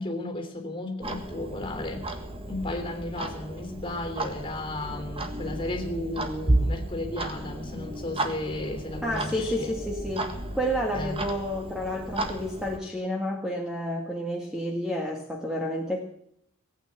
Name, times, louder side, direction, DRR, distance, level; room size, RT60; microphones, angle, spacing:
voice 1, 0.0-2.1 2.5-9.8 10.9-11.2, left 1 dB, 25° left, 4 dB, 3.2 m, -34 dB
Clock, 1.0-12.8, right 1 dB, 25° right, 1.6 m, -33 dB
voice 2, 9.0-10.3 10.5-16.0, equal, 5° right, 0 dB, 1.7 m, -30 dB
18.5 x 9.0 x 7.7 m, 0.73 s
head